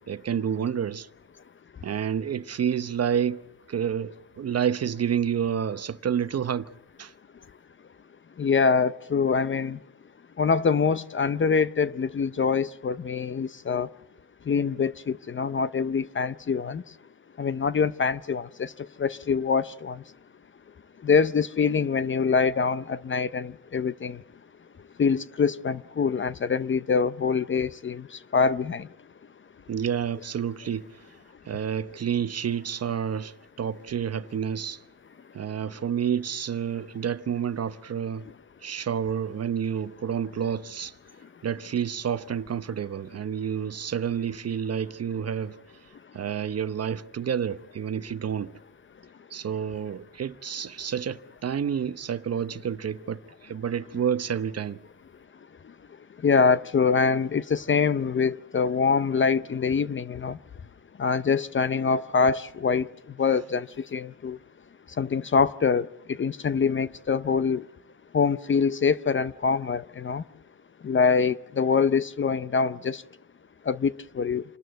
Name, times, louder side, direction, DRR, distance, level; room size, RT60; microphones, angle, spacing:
voice 1, 0.1-1.1 1.8-3.4 3.7-6.7 7.0-7.1 29.7-30.9 31.5-34.8 35.3-38.2 38.6-40.9 41.4-45.6 46.1-48.5 49.3-54.8, right 8 dB, 40° right, 0.9 m, -29 dB
voice 2, 8.4-9.8 10.4-13.9 14.5-16.8 17.4-18.7 19.0-20.0 21.0-24.2 25.0-28.0 28.3-28.8 56.2-60.4 61.0-62.9 63.2-63.7 63.9-64.4 65.0-65.9 66.2-67.6 68.1-70.2 70.8-73.0 73.7-74.4, left 5 dB, 30° left, 0.6 m, -24 dB
27.5 x 12.5 x 8.0 m
cardioid pair, 80°, 39 cm